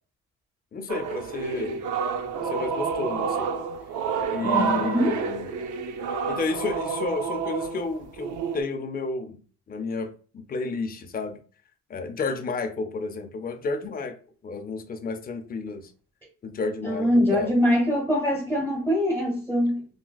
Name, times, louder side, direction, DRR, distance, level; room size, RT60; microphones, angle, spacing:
voice 1, 0.7-1.8 2.4-3.5 4.3-5.5 6.3-9.4 9.7-11.4 11.9-14.2 14.4-15.9 16.4-17.5, left 3 dB, 30° left, 0.5 m, -31 dB
sound 1, 0.9-8.6, right 5 dB, 80° right, 0.5 m, -29 dB
voice 2, 4.4-5.2 16.8-19.8, equal, 10° right, 1.1 m, -23 dB
3.9 x 2.2 x 2.3 m
cardioid pair, 90°, 30 cm